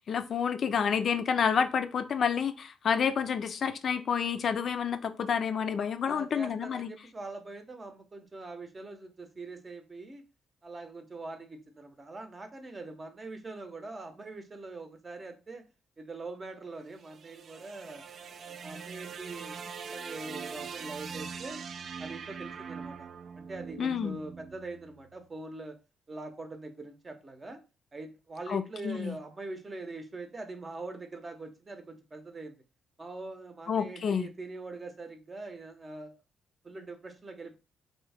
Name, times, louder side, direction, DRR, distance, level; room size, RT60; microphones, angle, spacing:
voice 1, 0.1-6.9 23.8-24.2 28.5-29.2 33.7-34.3, left 7 dB, 55° left, 9 dB, 0.3 m, -29 dB
voice 2, 6.0-10.2 10.6-15.6 16.0-18.0 18.5-19.6 19.9-21.6 22.0-23.1 23.4-25.8 26.1-27.6 27.9-32.6 33.0-36.1 36.6-37.6, right 2 dB, 30° right, 6 dB, 0.7 m, -43 dB
sound 1, 16.8-25.1, right 6 dB, 55° right, 0.3 m, -42 dB
2.9 x 2.7 x 3.3 m, 0.31 s
cardioid pair, 90°, 0 cm